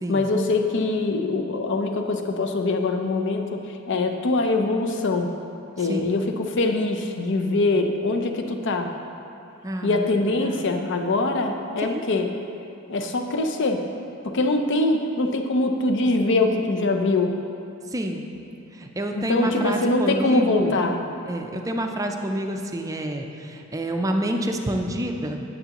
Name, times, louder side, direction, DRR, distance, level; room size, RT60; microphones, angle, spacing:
voice 1, 0.1-5.3 5.8-8.9 9.8-12.3 12.9-13.8 14.2-17.3 19.1-21.0, left 2 dB, 55° left, 5 dB, 0.6 m, -23 dB
voice 2, 9.6-10.0 10.4-10.8 11.8-12.0 17.9-18.3 18.7-20.8 21.3-25.4, right 1 dB, 15° right, 3 dB, 0.4 m, -28 dB
9.3 x 7.6 x 2.9 m, 2.7 s
head